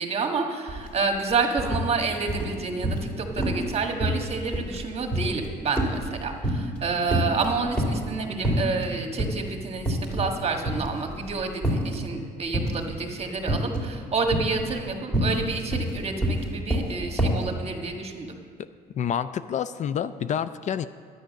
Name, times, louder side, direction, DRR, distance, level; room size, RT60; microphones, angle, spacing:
voice 1, 0.0-18.4, right 4 dB, 35° right, 4 dB, 1.5 m, -29 dB
sound 1, 0.7-0.9 1.2-1.9 2.3-3.1 3.4-3.7 4.0-6.8 7.1-8.1 8.4-8.9 9.2-9.4 9.8-10.4 10.6-12.0 12.5-12.9 13.5-13.9 14.3-17.5, equal, 5° left, 2.3 m, -26 dB
voice 2, 19.0-20.9, left 8 dB, 45° left, 13 dB, 0.4 m, -28 dB
11.0 x 9.1 x 6.4 m, 2.1 s
cardioid pair, 110°, 17 cm